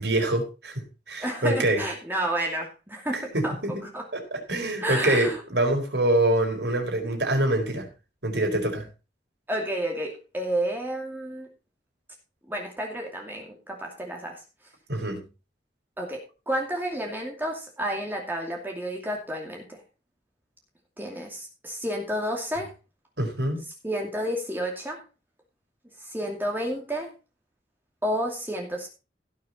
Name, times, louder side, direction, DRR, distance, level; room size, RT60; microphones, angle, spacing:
voice 1, 0.0-1.9 3.1-7.9 8.2-8.9 14.9-15.3 23.2-23.7, right 1 dB, 65° right, 3 dB, 4.5 m, -25 dB
voice 2, 1.2-3.5 3.8-4.1 4.8-5.4 9.5-11.5 12.5-14.4 16.0-19.8 21.0-22.7 23.8-25.0 26.0-27.1 28.0-28.9, right 1 dB, 10° right, 0 dB, 2.5 m, -30 dB
16.5 x 6.9 x 4.3 m, 0.31 s
head